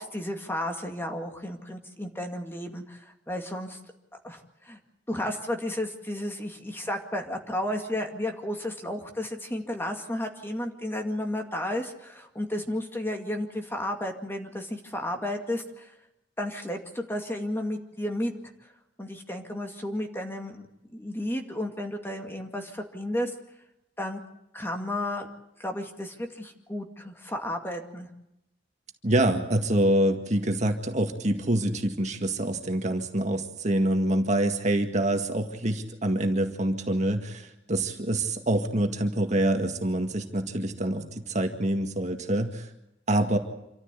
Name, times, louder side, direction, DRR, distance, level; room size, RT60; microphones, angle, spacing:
voice 1, 0.0-3.8 4.2-4.8 5.1-15.9 16.4-18.3 19.0-23.3 24.0-24.2 24.5-25.3 25.6-28.1, left 1 dB, 15° left, 4 dB, 2.2 m, -33 dB
voice 2, 29.0-42.7 43.1-43.4, right 1 dB, 40° right, 5 dB, 1.9 m, -26 dB
27.0 x 14.0 x 8.4 m, 0.88 s
head